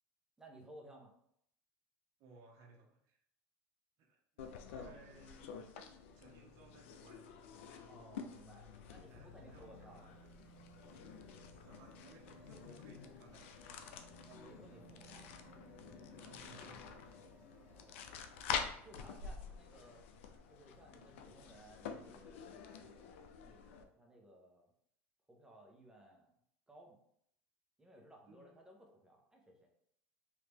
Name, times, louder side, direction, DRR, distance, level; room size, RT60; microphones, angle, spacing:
voice 1, 0.4-1.1 4.6-5.0 7.9-8.6 8.9-10.0 14.3-15.3 15.8-16.4 17.7-18.2 18.8-20.0 20.5-24.7 25.3-26.3 26.7-27.0 27.8-29.7, right 1 dB, 10° right, 0 dB, 1.0 m, -59 dB
voice 2, 2.2-3.2 4.0-4.2 4.7-5.5 6.1-7.2 9.0-10.1 11.7-13.8 16.2-17.1 28.3-28.6, right 3 dB, 55° right, -1 dB, 0.9 m, -61 dB
sound 1, 4.4-23.8, left 6 dB, 85° left, 0.4 m, -48 dB
sound 2, 8.4-19.2 20.4-20.5, right 3 dB, 25° right, 1.3 m, -62 dB
3.1 x 2.8 x 3.4 m, 0.71 s
supercardioid pair, 95°, 7 cm